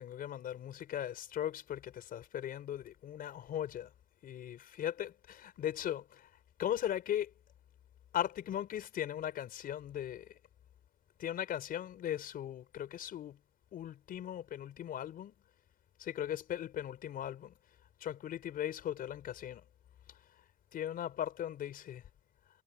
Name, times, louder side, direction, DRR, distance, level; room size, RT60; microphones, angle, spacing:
voice 1, 0.0-3.9 4.2-5.1 5.6-6.3 6.6-7.3 8.1-10.4 11.2-13.4 13.7-15.3 16.0-17.6 18.0-19.7 20.1-20.4 20.7-22.1, left 11 dB, 60° left, 4.9 m, -38 dB
cardioid pair, 110°, 17 cm